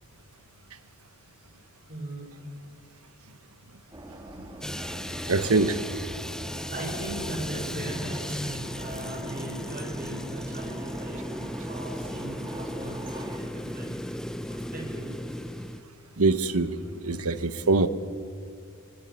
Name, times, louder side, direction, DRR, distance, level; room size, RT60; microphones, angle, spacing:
voice 1, 1.9-2.3 6.6-13.9 14.5-15.1, right 1 dB, 40° right, 1 dB, 6.1 m, -39 dB
sound 1, 3.9-13.4, right 1 dB, 15° right, 2.2 m, -43 dB
sound 2, 4.6-15.8, equal, 5° left, 0.6 m, -36 dB
voice 2, 5.2-5.8 16.2-17.9, right 3 dB, 80° right, 12 dB, 1.2 m, -24 dB
24.0 x 20.0 x 9.9 m, 2.4 s
head